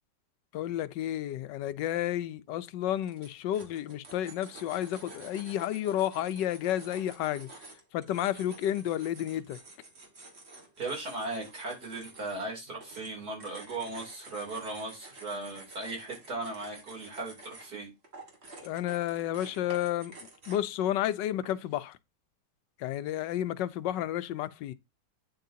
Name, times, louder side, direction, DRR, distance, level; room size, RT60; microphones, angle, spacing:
voice 1, 0.5-7.5 7.9-9.6 18.6-20.1 20.5-22.0 22.8-24.7, left 12 dB, 85° left, 1.3 m, -31 dB
sound 1, 2.8-20.8 21.4-21.8, right 2 dB, 40° right, 2.0 m, -50 dB
voice 2, 10.8-17.9, right 2 dB, 60° right, 3.7 m, -37 dB
9.0 x 7.8 x 2.8 m
omnidirectional pair, 1.9 m